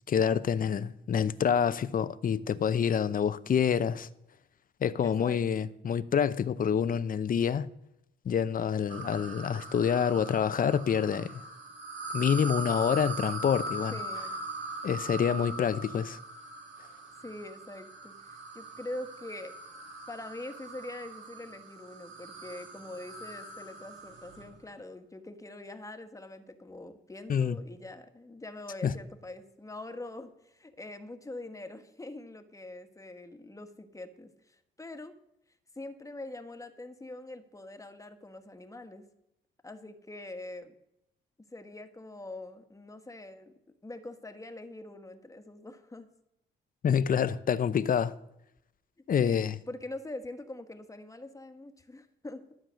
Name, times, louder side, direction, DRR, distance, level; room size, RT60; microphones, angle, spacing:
voice 1, 0.1-4.1 4.8-7.7 8.2-11.4 12.1-14.0 14.8-16.2 27.3-27.6 28.8-28.9 46.8-48.1 49.1-49.6, left 7 dB, 45° left, 0.7 m, -27 dB
voice 2, 5.0-5.7 13.9-14.4 17.2-19.5 20.1-35.1 35.7-39.0 39.6-40.7 41.5-43.5 43.8-46.1 49.2-52.4, left 2 dB, 15° left, 1.4 m, -44 dB
sound 1, 8.9-24.5, right 3 dB, 70° right, 3.2 m, -41 dB
13.0 x 7.4 x 6.4 m
cardioid pair, 90°, 20 cm